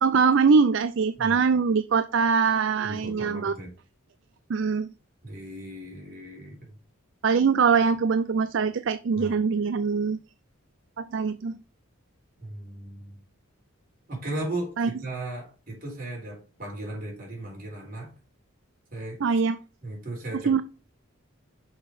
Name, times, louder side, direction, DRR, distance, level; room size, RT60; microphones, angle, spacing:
voice 1, 0.0-3.5 4.5-4.9 7.2-10.2 11.0-11.6 14.8-14.9 19.2-19.6 20.5-20.6, right 5 dB, 55° right, 12 dB, 0.4 m, -22 dB
voice 2, 2.8-3.7 5.2-6.6 9.1-9.4 12.4-13.2 14.1-18.1 18.9-19.2 19.8-20.5, right 1 dB, 40° right, -2 dB, 3.9 m, -36 dB
6.3 x 5.1 x 5.2 m, 0.34 s
head